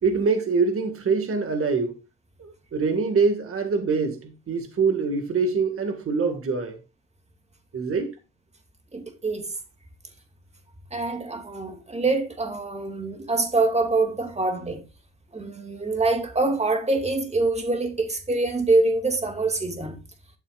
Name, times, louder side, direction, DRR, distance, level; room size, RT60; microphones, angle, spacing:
voice 1, 0.0-1.9 2.4-6.8 7.7-8.1, right 4 dB, 45° right, 1.8 m, -24 dB
voice 2, 8.9-9.5 10.9-14.8 15.3-20.0, right 3 dB, 20° right, 2.3 m, -25 dB
12.5 x 6.9 x 2.4 m
cardioid pair, 80°, 31 cm